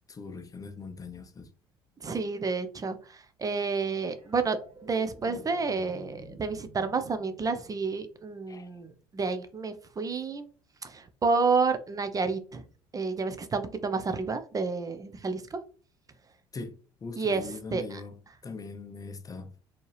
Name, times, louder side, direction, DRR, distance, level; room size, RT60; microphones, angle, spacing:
voice 1, 0.1-1.5 8.5-8.7 16.5-19.5, left 4 dB, 30° left, 0.6 m, -41 dB
voice 2, 2.0-4.6 4.8-10.5 10.8-12.6 12.9-15.6 17.2-18.0, right 4 dB, 30° right, 0.7 m, -30 dB
sound 1, 4.0-8.5 10.9-11.0, equal, 45° right, 1.8 m, -51 dB
4.4 x 2.9 x 3.2 m
hypercardioid pair, 65°, 13 cm